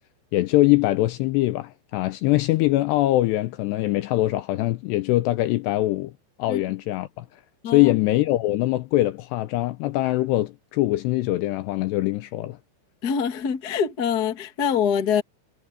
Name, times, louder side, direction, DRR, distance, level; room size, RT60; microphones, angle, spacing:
voice 1, 0.3-6.1 6.4-7.3 7.7-12.6, left 17 dB, 80° left, 2.6 m, -22 dB
voice 2, 13.0-15.2, left 7 dB, 50° left, 1.1 m, -24 dB
omnidirectional pair, 5.4 m